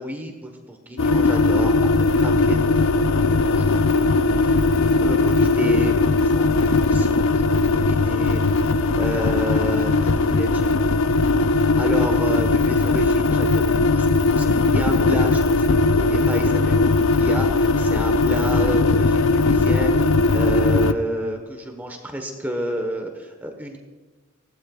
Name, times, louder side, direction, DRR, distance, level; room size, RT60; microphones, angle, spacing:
voice 1, 0.0-1.7 2.0-3.1 3.5-8.7 9.0-23.8, equal, 10° right, 3 dB, 1.2 m, -31 dB
sound 1, 1.0-20.9, left 3 dB, 70° left, 0.5 m, -19 dB
19.5 x 15.5 x 2.4 m, 1.3 s
head